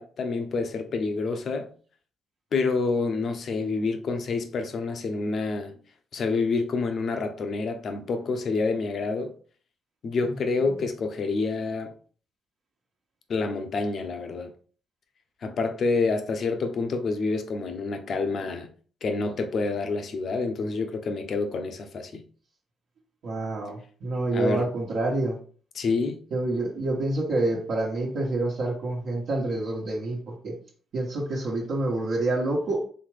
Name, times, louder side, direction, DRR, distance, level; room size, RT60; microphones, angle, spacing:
voice 1, 0.0-1.7 2.5-5.8 6.1-9.3 10.0-11.9 13.3-14.5 15.4-18.7 19.0-22.2 24.3-24.6 25.7-26.2, left 4 dB, 55° left, 0.8 m, -28 dB
voice 2, 23.2-25.4 26.3-30.5 30.9-32.9, right 2 dB, 65° right, 1.1 m, -27 dB
4.3 x 3.4 x 3.3 m
cardioid pair, 90°, 0 cm